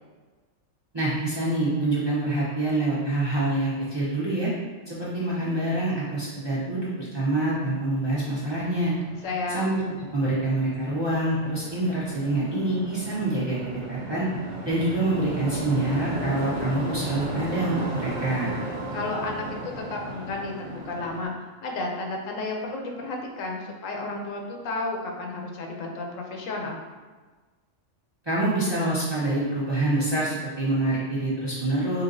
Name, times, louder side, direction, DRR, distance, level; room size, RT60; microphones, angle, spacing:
voice 1, 0.9-4.5 4.9-8.9 9.5-9.8 10.1-14.3 14.6-18.6 28.2-32.0, right 2 dB, 25° right, -9 dB, 0.7 m, -26 dB
sound 1, 7.8-21.2, right 2 dB, 80° right, 1.1 m, -35 dB
voice 2, 8.9-9.7 18.9-21.3 21.6-26.8, left 3 dB, 80° left, 1 dB, 1.0 m, -32 dB
4.7 x 2.8 x 2.6 m, 1.3 s
omnidirectional pair, 1.3 m